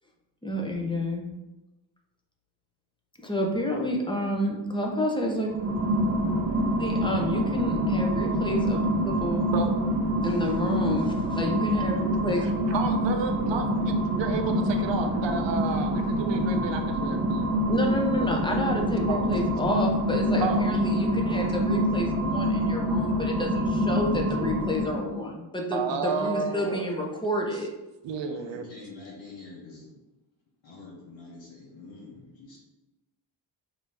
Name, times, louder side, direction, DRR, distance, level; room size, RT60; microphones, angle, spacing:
voice 1, 0.4-1.2 3.2-5.5 6.8-9.5 10.2-12.8 17.7-27.7, equal, 10° left, 0 dB, 0.7 m, -29 dB
sound 1, 5.4-25.2, equal, 35° right, 0.7 m, -26 dB
voice 2, 12.3-17.9 19.1-19.2 20.4-20.7 25.7-26.9 28.0-28.7, right 5 dB, 75° right, 5 dB, 0.6 m, -32 dB
voice 3, 28.2-29.9 30.6-32.6, left 3 dB, 75° left, -6 dB, 1.1 m, -46 dB
5.2 x 2.8 x 3.4 m, 1.0 s
wide cardioid pair, 120°, 45 cm